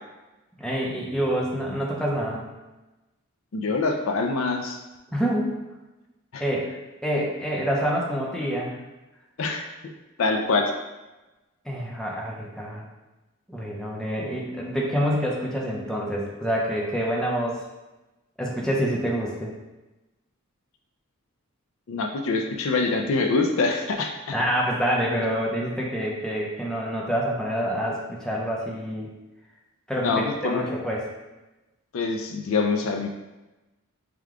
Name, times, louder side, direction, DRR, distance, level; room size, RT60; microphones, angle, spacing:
voice 1, 0.6-2.4 5.1-5.6 6.4-6.7 7.0-8.7 11.6-12.8 13.5-17.6 18.4-19.5 24.3-29.1 29.9-31.1, equal, 5° left, -3 dB, 0.5 m, -27 dB
voice 2, 3.5-4.8 6.3-6.4 9.4-9.6 10.2-10.6 21.9-24.4 30.0-30.7 31.9-33.1, left 3 dB, 65° left, 3 dB, 0.4 m, -25 dB
4.8 x 2.3 x 3.6 m, 1.1 s
head